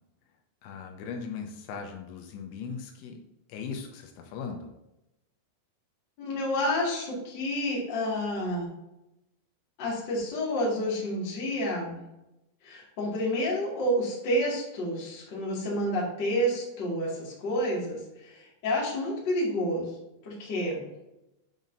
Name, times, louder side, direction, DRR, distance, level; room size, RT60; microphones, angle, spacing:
voice 1, 0.6-3.2 3.5-4.7, left 5 dB, 80° left, 3 dB, 2.9 m, -38 dB
voice 2, 6.2-8.7 9.8-12.0 12.6-19.9 20.2-20.8, equal, 45° left, -5 dB, 1.5 m, -29 dB
9.2 x 5.1 x 2.6 m, 0.90 s
omnidirectional pair, 5.3 m